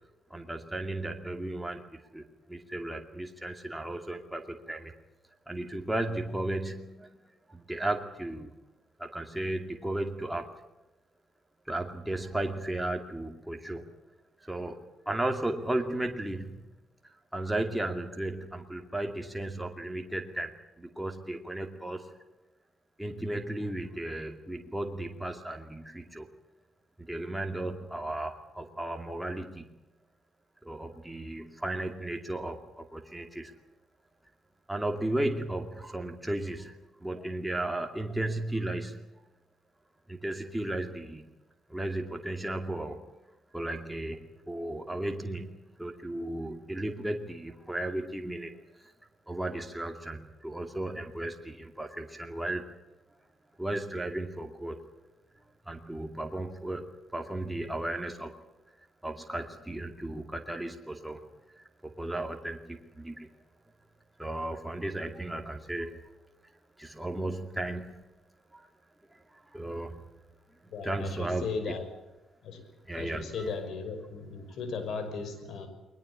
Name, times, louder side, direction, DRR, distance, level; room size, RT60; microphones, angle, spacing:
voice 1, 0.3-1.8 2.1-4.9 5.5-7.1 7.5-8.5 9.0-10.5 11.7-13.9 14.4-16.6 17.3-20.5 20.8-22.1 23.0-26.3 27.0-29.7 30.6-33.5 34.7-39.0 40.1-41.3 41.7-43.0 43.5-48.5 48.8-48.9 49.3-52.6 53.6-54.8 55.7-58.3 59.0-61.2 61.6-63.3 64.2-66.0 66.8-68.0 68.5-68.7 69.3-70.0 70.8-71.7 72.8-73.5, right 1 dB, 5° right, 3 dB, 2.4 m, -35 dB
voice 2, 70.7-71.8 72.4-72.6 72.9-75.7, left 4 dB, 70° left, 8 dB, 5.8 m, -36 dB
21.5 x 20.0 x 8.6 m, 1.0 s
cardioid pair, 90°, 0 cm